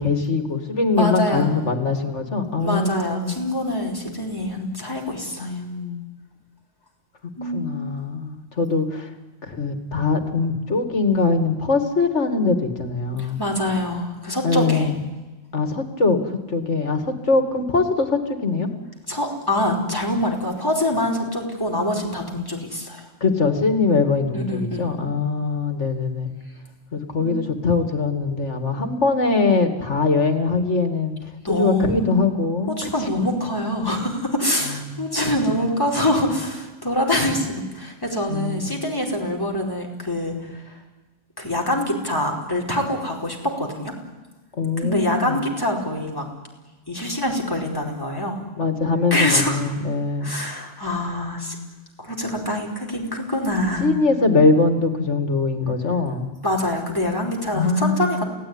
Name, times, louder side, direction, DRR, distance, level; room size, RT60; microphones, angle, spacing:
voice 1, 0.0-3.4 5.4-6.1 7.4-9.1 9.4-13.4 14.4-15.0 15.5-18.7 23.2-26.3 26.9-31.2 31.5-33.3 34.7-35.0 38.3-38.8 44.5-45.4 48.6-50.3 53.8-56.3 57.5-58.2, left 3 dB, 70° left, 7 dB, 2.8 m, -22 dB
voice 2, 1.0-1.5 2.6-5.5 7.4-7.9 13.2-14.9 19.1-23.1 24.3-24.8 27.2-27.4 31.4-32.2 32.7-40.7 41.4-43.9 44.8-46.2 46.9-48.4 49.1-49.7 50.2-51.5 52.0-53.9 56.4-58.2, left 1 dB, 15° left, 1 dB, 4.7 m, -25 dB
28.5 x 17.5 x 9.9 m, 1.2 s
omnidirectional pair, 1.3 m